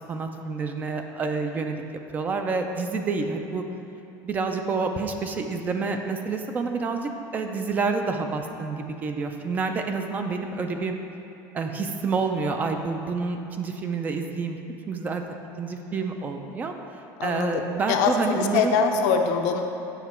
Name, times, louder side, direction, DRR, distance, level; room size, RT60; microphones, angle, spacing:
voice 1, 0.1-1.8 2.1-3.6 4.2-11.0 11.5-14.6 14.9-15.2 15.6-16.7 17.2-18.8, right 4 dB, 20° right, 5 dB, 0.3 m, -28 dB
voice 2, 17.2-19.6, left 5 dB, 85° left, 4 dB, 0.7 m, -24 dB
8.0 x 5.9 x 4.3 m, 3.0 s
cardioid pair, 180°, 9 cm